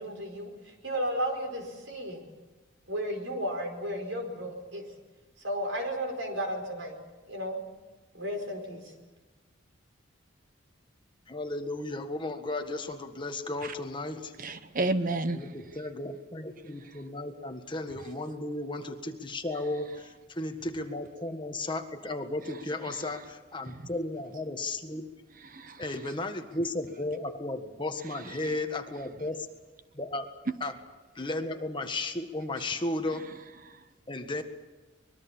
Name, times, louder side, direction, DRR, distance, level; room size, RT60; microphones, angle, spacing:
voice 1, 0.0-2.2 2.9-4.9 5.4-7.0 7.3-7.6 8.1-8.8, equal, 75° right, 4 dB, 4.9 m, -33 dB
voice 2, 11.3-14.3 15.3-25.1 25.8-29.5 29.9-30.3 30.6-30.7 31.1-33.3 34.1-34.4, left 2 dB, 25° left, 5 dB, 1.6 m, -34 dB
voice 3, 14.4-15.4 25.4-25.9 28.2-28.3, right 2 dB, 45° right, 11 dB, 1.1 m, -31 dB
24.5 x 21.5 x 7.3 m, 1.2 s
head